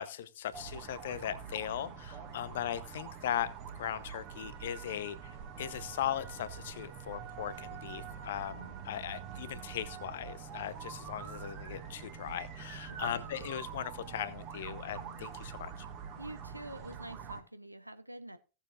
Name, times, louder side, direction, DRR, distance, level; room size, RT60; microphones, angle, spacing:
voice 1, 0.0-3.5 3.8-5.2 5.6-15.7, left 10 dB, 60° left, 0.8 m, -38 dB
sound 1, 0.5-17.4, right 7 dB, 40° right, 1.9 m, -45 dB
voice 2, 12.9-13.3 16.2-18.4, right 1 dB, 85° right, 0.8 m, -46 dB
17.0 x 7.0 x 2.4 m
figure-of-eight pair, 90°, 0 cm